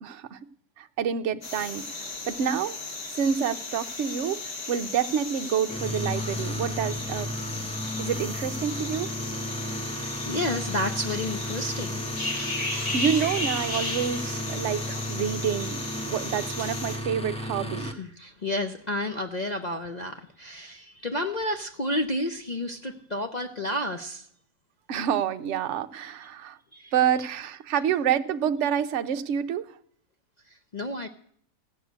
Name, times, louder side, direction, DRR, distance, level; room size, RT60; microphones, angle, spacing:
voice 1, 0.0-0.4 0.8-1.8 2.3-2.8 3.2-7.3 8.0-9.2 12.9-15.8 16.0-17.9 24.9-26.6 26.9-29.8, right 8 dB, 55° right, 8 dB, 0.9 m, -28 dB
sound 1, 1.4-17.0, left 2 dB, 70° left, 3.0 m, -35 dB
sound 2, 5.7-17.9, left 1 dB, 5° left, 0.7 m, -34 dB
voice 2, 9.9-12.0 17.7-24.3 26.7-26.9 30.5-31.1, left 1 dB, 50° left, 5 dB, 0.5 m, -31 dB
15.0 x 6.6 x 9.2 m, 0.63 s
omnidirectional pair, 1.7 m